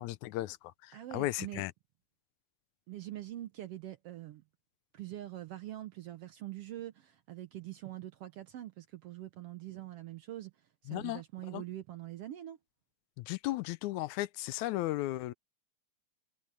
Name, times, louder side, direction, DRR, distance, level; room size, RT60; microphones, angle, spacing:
voice 1, 0.0-1.7 10.9-11.2 11.5-11.6 13.2-15.3, left 16 dB, 80° left, 1.9 m, -35 dB
voice 2, 0.9-1.6 2.9-4.4 4.9-10.5 10.8-12.6, right 14 dB, 70° right, 1.5 m, -44 dB
omnidirectional pair, 3.4 m